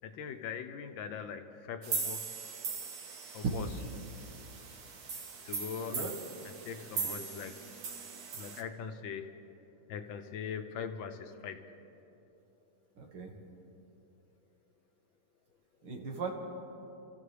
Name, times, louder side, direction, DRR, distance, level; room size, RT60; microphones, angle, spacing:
voice 1, 0.0-2.3 3.3-3.7 5.5-6.2 6.4-7.6 8.3-9.3 9.9-11.6, left 7 dB, 70° left, 7 dB, 1.4 m, -41 dB
sound 1, 1.8-8.6, right 5 dB, 50° right, 1.4 m, -40 dB
voice 2, 13.0-13.3 15.8-16.3, right 4 dB, 80° right, 0 dB, 2.7 m, -40 dB
29.0 x 14.0 x 3.4 m, 2.9 s
omnidirectional pair, 2.3 m